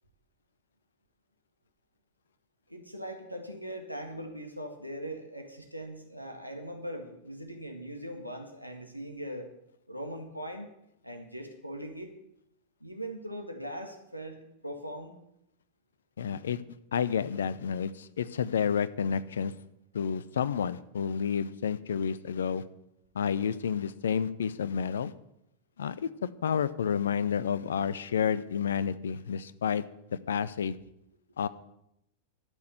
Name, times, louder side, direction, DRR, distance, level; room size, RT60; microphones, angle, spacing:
voice 1, 2.7-9.5 9.9-10.7 11.0-12.1 12.8-15.1, equal, 90° right, 4 dB, 1.8 m, -40 dB
voice 2, 16.2-16.6 16.9-19.5 19.9-22.6 23.1-25.1 25.8-29.8 30.3-30.8 31.4-31.5, left 7 dB, 65° left, 16 dB, 0.6 m, -30 dB
12.0 x 6.4 x 9.1 m, 0.79 s
figure-of-eight pair, 90°, 0 cm